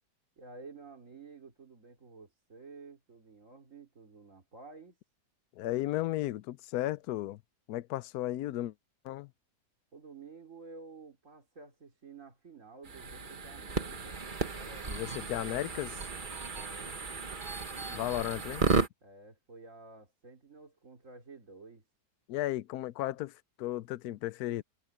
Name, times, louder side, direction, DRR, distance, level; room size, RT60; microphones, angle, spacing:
voice 1, 0.4-5.0 9.9-15.3 16.5-17.0 19.0-21.9, right 4 dB, 50° right, 3.6 m, -52 dB
voice 2, 5.6-7.4 7.7-8.7 9.0-9.3 14.9-16.0 17.9-18.7 22.3-24.6, left 15 dB, 70° left, 1.1 m, -34 dB
sound 1, 12.8-18.9, right 4 dB, 30° right, 1.5 m, -34 dB
omnidirectional pair, 1.8 m